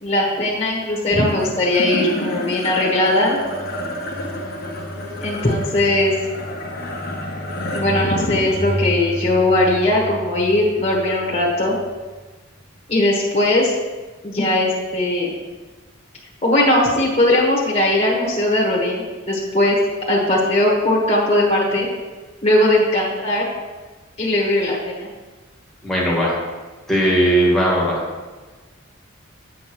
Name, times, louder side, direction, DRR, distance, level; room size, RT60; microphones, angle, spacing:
voice 1, 0.0-3.4 5.2-6.2 7.7-11.7 12.9-13.7 14.2-15.3 16.4-19.8 20.1-21.9 22.4-23.4 24.2-25.1, left 1 dB, 30° left, -5 dB, 1.3 m, -19 dB
sound 1, 1.3-11.8, left 1 dB, 45° left, 1.0 m, -28 dB
voice 2, 25.8-26.3 26.9-28.0, right 1 dB, ahead, -6 dB, 1.7 m, -17 dB
8.4 x 7.0 x 3.1 m, 1.3 s
head